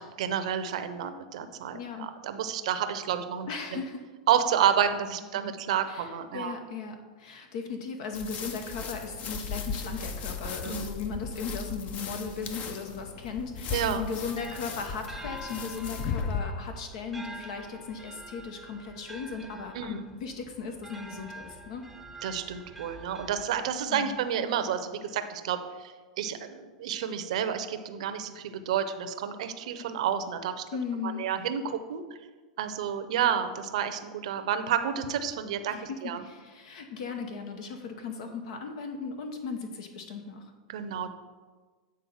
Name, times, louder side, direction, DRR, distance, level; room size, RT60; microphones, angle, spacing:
voice 1, 0.0-3.8 4.3-6.5 10.6-10.8 13.7-14.0 19.7-20.0 22.2-30.6 31.0-32.0 32.6-36.2 40.7-41.1, right 8 dB, 70° right, 10 dB, 0.7 m, -30 dB
voice 2, 1.7-2.1 3.5-4.1 5.9-21.8 23.9-24.2 30.7-31.3 35.7-40.5, left 5 dB, 65° left, 5 dB, 0.9 m, -37 dB
sound 1, 8.1-16.4, left 5 dB, 35° left, 0.7 m, -36 dB
sound 2, 14.0-23.9, equal, ahead, 0.7 m, -47 dB
8.7 x 4.0 x 5.6 m, 1.4 s
hypercardioid pair, 115°, 4 cm